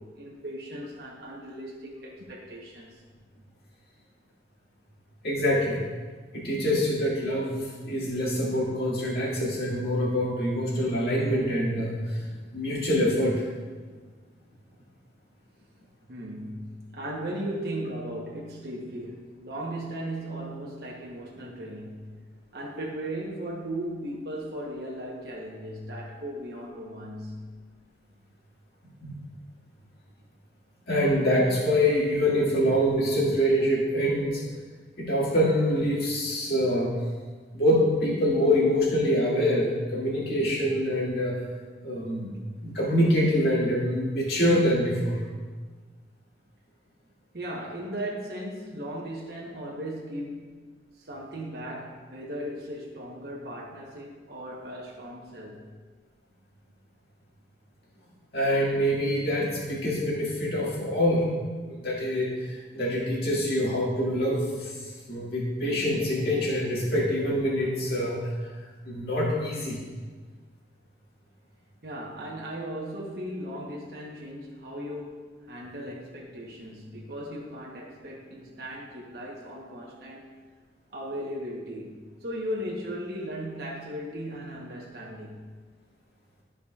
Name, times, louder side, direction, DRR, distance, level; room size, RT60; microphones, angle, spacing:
voice 1, 0.0-3.0 16.1-22.2 22.5-27.5 47.3-50.6 51.0-55.6 71.8-80.4 80.9-85.5, equal, 60° right, -3 dB, 1.1 m, -37 dB
voice 2, 5.2-5.8 6.3-12.3 12.5-13.5 29.0-29.2 30.9-34.4 35.0-36.9 37.5-41.3 41.8-42.3 42.6-45.2 58.3-61.3 61.6-68.2 68.8-69.8, equal, 60° left, -5 dB, 2.1 m, -25 dB
13.0 x 5.0 x 2.4 m, 1.4 s
head